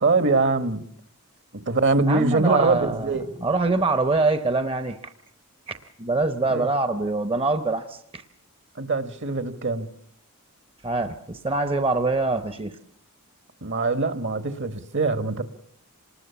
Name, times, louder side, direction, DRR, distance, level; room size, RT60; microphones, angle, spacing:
voice 1, 0.0-0.8 1.5-3.3 6.4-6.7 8.8-9.9 13.6-15.4, right 3 dB, 55° right, 11 dB, 1.5 m, -23 dB
voice 2, 2.1-3.1 3.4-5.1 6.0-8.2 10.8-12.8, right 3 dB, 25° right, 9 dB, 0.8 m, -24 dB
26.5 x 20.0 x 7.0 m, 0.68 s
head